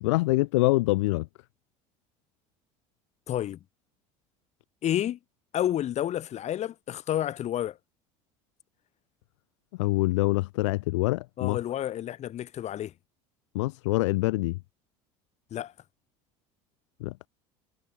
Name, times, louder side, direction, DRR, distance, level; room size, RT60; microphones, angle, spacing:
voice 1, 0.0-1.3 9.8-11.6 13.5-14.6 17.0-17.3, left 21 dB, 85° left, 1.0 m, -25 dB
voice 2, 3.3-3.6 4.8-5.2 5.5-7.8 11.4-12.9 15.5-15.7, left 11 dB, 50° left, 5.0 m, -30 dB
supercardioid pair, 90°, 15 cm